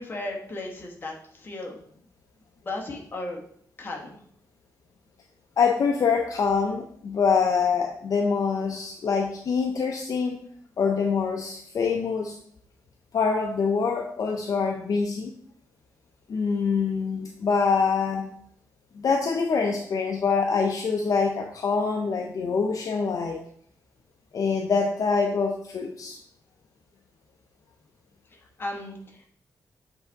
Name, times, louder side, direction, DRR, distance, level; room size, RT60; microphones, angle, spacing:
voice 1, 0.0-2.0 2.5-3.4 3.8-4.2 28.3-29.3, left 2 dB, 30° left, 0 dB, 1.4 m, -36 dB
voice 2, 5.6-10.4 10.8-12.3 13.1-15.3 16.3-18.3 19.0-23.4 24.3-26.2, left 5 dB, 60° left, 2 dB, 0.7 m, -25 dB
8.1 x 3.5 x 4.0 m, 0.63 s
wide cardioid pair, 145°, 7 cm